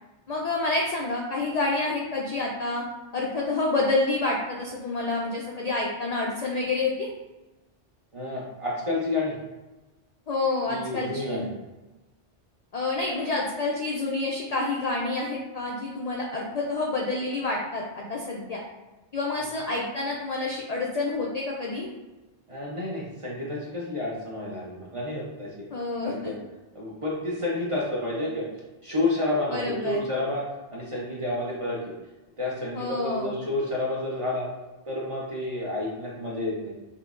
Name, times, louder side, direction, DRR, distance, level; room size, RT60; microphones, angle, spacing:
voice 1, 0.3-2.8 3.1-7.1 10.3-11.5 12.7-18.6 19.1-21.9 25.7-26.3 29.5-30.1 32.7-33.4, left 2 dB, 65° left, -2 dB, 0.4 m, -28 dB
voice 2, 8.1-9.3 10.7-11.5 22.5-25.6 26.0-26.4 26.7-28.4 28.8-30.5 30.7-31.8 32.4-34.5 34.9-36.8, left 2 dB, 35° right, -5 dB, 0.5 m, -30 dB
5.4 x 2.1 x 2.4 m, 1.1 s
omnidirectional pair, 1.2 m